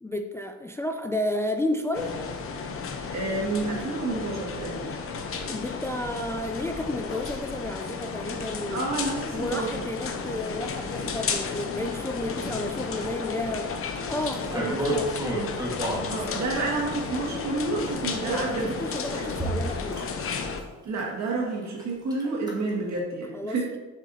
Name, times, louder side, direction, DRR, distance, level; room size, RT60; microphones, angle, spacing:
voice 1, 0.0-2.2 5.4-9.0 9.3-13.8 14.1-15.2 16.3-16.4 18.2-20.0 23.3-23.8, left 1 dB, 10° left, 6 dB, 0.3 m, -32 dB
sound 1, 1.9-20.6, left 5 dB, 45° left, 0.8 m, -33 dB
voice 2, 3.1-4.9 8.7-9.7 14.6-14.8 16.1-18.7 20.8-23.7, right 3 dB, 65° right, -2 dB, 2.1 m, -29 dB
sound 2, 14.3-16.1 16.8-17.6 18.5-18.6 19.3-20.0 20.4-20.6 21.0-21.1 21.5-21.8 22.1-22.5 23.0-23.1, right 1 dB, 15° right, 1.6 m, -30 dB
6.7 x 6.0 x 2.8 m, 1.2 s
cardioid pair, 90°, 30 cm